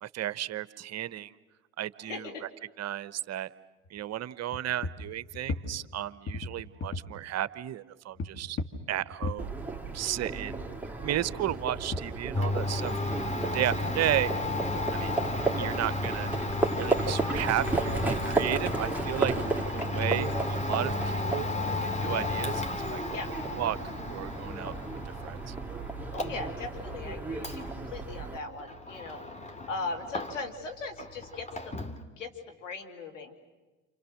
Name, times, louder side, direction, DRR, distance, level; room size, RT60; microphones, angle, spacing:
voice 1, 0.0-1.3 1.8-2.5 2.8-3.5 3.9-8.6 8.9-9.5 9.9-10.6 11.0-12.9 13.5-14.3 14.9-15.1 15.5-16.3 16.7-19.3 19.7-21.5 21.8-23.2 23.5-24.7 25.2-25.5, right 12 dB, 45° right, 16 dB, 1.0 m, -33 dB
voice 2, 2.0-2.4 23.1-23.3 26.1-29.2 29.7-31.9 32.2-33.4, left 3 dB, 90° left, 3 dB, 2.7 m, -39 dB
sound 1, 3.8-4.0 4.5-6.0 6.3-7.1 8.1-10.0 10.4-12.6, left 3 dB, 35° left, 2.3 m, -37 dB
Livestock farm animals working animals, 9.4-28.4, right 3 dB, 5° right, 2.5 m, -34 dB
Domestic sounds home sounds, 12.3-30.7 30.9-32.0, left 2 dB, 20° left, 2.5 m, -34 dB
28.5 x 28.0 x 6.5 m, 1.2 s
hypercardioid pair, 65°, 37 cm